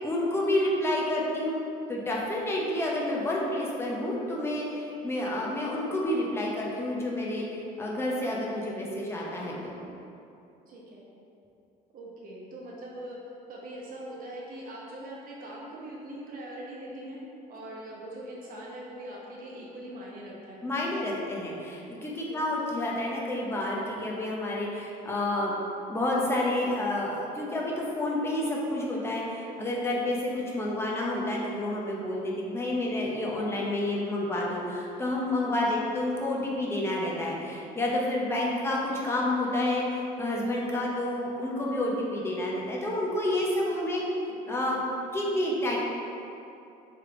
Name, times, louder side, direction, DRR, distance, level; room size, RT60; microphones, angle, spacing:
voice 1, 0.0-1.6 1.9-9.8 20.6-25.5 25.9-44.0 44.5-44.8 45.1-45.8, left 1 dB, 15° left, -4 dB, 0.7 m, -29 dB
voice 2, 10.7-11.0 11.9-17.2 17.5-20.7 22.2-22.4 35.6-35.9 44.3-44.6, right 1 dB, 55° right, -4 dB, 1.0 m, -42 dB
3.4 x 3.1 x 3.8 m, 2.7 s
cardioid pair, 110°, 17 cm